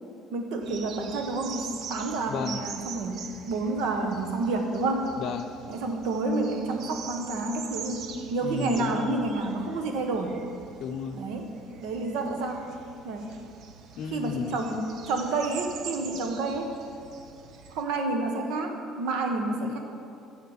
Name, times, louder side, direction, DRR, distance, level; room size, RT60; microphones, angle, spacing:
voice 1, 0.3-3.2 3.5-5.1 5.7-10.4 11.1-11.5 11.8-12.7 13.0-13.3 14.1-16.7 17.7-19.8, right 3 dB, 80° right, 4 dB, 1.3 m, -29 dB
sound 1, 0.6-17.8, right 6 dB, 55° right, 0.7 m, -43 dB
voice 2, 2.3-2.6 5.2-5.5 8.4-9.3 10.8-11.2 14.0-14.6, left 6 dB, 50° left, 7 dB, 0.6 m, -33 dB
9.4 x 6.4 x 7.3 m, 2.5 s
cardioid pair, 165°, 0 cm